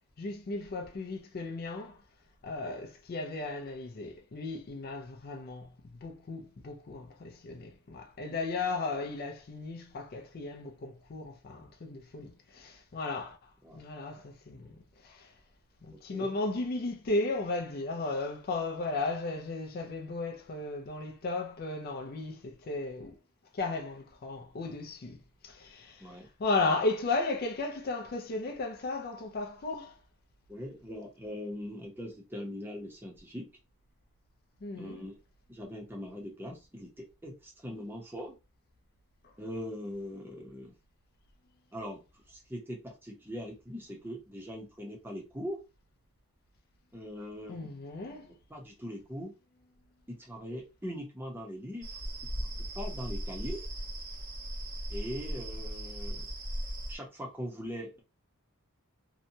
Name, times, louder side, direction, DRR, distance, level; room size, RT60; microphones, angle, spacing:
voice 1, 0.2-2.0 2.4-5.8 6.0-15.4 15.8-23.2 23.5-30.0 34.6-35.1 39.2-39.3 47.5-48.3, left 3 dB, 45° left, 0.4 m, -35 dB
voice 2, 30.5-33.5 34.7-35.2 35.5-38.3 39.4-40.7 41.7-45.6 46.9-47.7 48.5-49.3 50.1-52.0 52.4-53.6 54.9-56.3 56.9-58.0, equal, 10° right, 0.7 m, -41 dB
sound 1, 51.8-57.0, equal, 60° right, 1.1 m, -38 dB
2.8 x 2.2 x 2.6 m
head